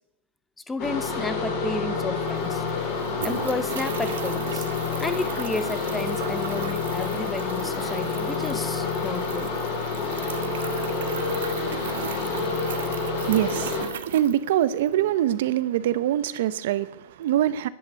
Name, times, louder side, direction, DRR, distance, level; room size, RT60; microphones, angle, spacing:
voice 1, 0.7-2.6 3.2-4.7 5.0-9.5, left 3 dB, 5° left, 0.7 m, -32 dB
sound 1, 0.8-13.8, left 4 dB, 35° left, 3.1 m, -28 dB
sound 2, 2.0-2.1 2.2-15.0, right 9 dB, 65° right, 1.1 m, -38 dB
voice 2, 12.3-17.7, right 12 dB, 50° right, 0.7 m, -25 dB
11.0 x 10.0 x 8.2 m
supercardioid pair, 175°, 0 cm